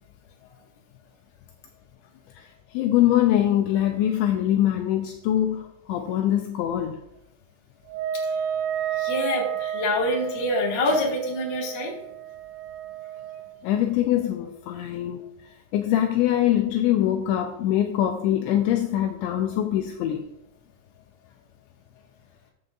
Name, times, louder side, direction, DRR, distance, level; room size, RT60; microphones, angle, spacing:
voice 1, 2.7-7.0 13.6-15.3 15.7-20.2, left 12 dB, 90° left, 5 dB, 2.6 m, -23 dB
Wind instrument woodwind instrument, 7.9-13.6, right 9 dB, 90° right, 3.3 m, -31 dB
voice 2, 9.0-11.9, left 1 dB, 55° left, -3 dB, 1.2 m, -26 dB
12.0 x 8.0 x 2.5 m, 0.81 s
omnidirectional pair, 5.8 m